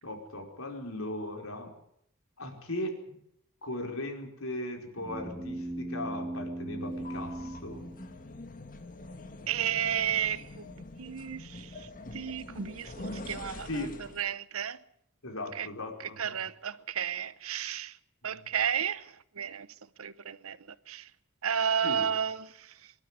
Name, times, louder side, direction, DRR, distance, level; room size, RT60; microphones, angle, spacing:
voice 1, 0.0-1.8 2.4-3.2 3.6-7.9 13.5-14.1 15.2-16.2 21.8-22.0, left 1 dB, 75° left, 4.9 m, -38 dB
sound 1, 5.0-8.7, right 1 dB, 10° right, 3.4 m, -39 dB
sound 2, 6.8-14.3, left 2 dB, 40° left, 1.7 m, -45 dB
voice 2, 9.5-13.7 14.2-14.8 15.5-15.7 16.0-18.0 18.2-19.7 20.0-21.1 21.4-22.9, right 8 dB, 80° right, 0.9 m, -33 dB
24.0 x 12.5 x 9.9 m
head